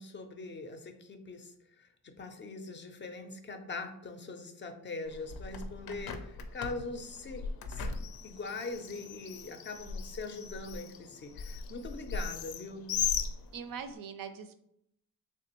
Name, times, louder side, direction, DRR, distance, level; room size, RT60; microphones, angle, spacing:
voice 1, 0.0-12.9, left 3 dB, 35° left, 7 dB, 0.4 m, -42 dB
Bird, 5.1-13.9, left 6 dB, 90° left, 0.5 m, -38 dB
voice 2, 13.5-14.5, right 6 dB, 70° right, 9 dB, 0.5 m, -41 dB
3.3 x 3.3 x 2.8 m, 0.74 s
wide cardioid pair, 150°, 35 cm